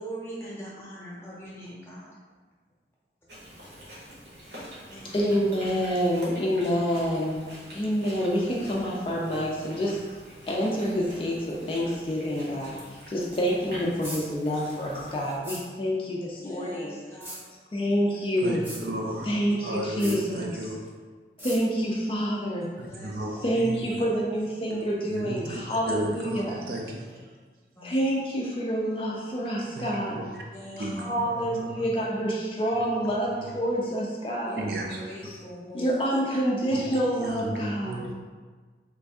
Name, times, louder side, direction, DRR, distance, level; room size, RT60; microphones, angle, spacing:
voice 1, 0.0-2.1 4.9-5.5 12.5-12.6 16.4-17.4 18.6-19.1 20.1-20.2 22.8-23.5 27.8-27.9 30.5-31.1 34.4-34.6 35.0-35.8, right 1 dB, 15° left, -7 dB, 0.8 m, -42 dB
Chewing mastication, 3.3-15.4, equal, 75° right, 1.1 m, -45 dB
voice 2, 5.0-7.4 7.7-10.0 10.5-12.8 13.1-16.9 17.7-18.7 19.2-20.7 21.4-22.7 23.3-26.6 27.8-30.2 30.8-34.6 35.7-38.0, equal, 30° left, -3 dB, 0.4 m, -27 dB
sound 1, 14.0-14.2 15.4-15.6 17.2-17.4 18.6-18.8 20.0-20.2 21.4-21.6, equal, 10° right, 0.8 m, -37 dB
voice 3, 18.4-19.3 19.6-20.7 22.8-23.3 23.6-23.7 25.1-27.1 29.8-29.9 30.2-30.4 30.8-31.1 31.4-31.8 34.6-35.0 36.7-36.9 37.2-38.1, right 1 dB, 60° right, -1 dB, 0.5 m, -34 dB
3.2 x 2.6 x 3.4 m, 1.5 s
head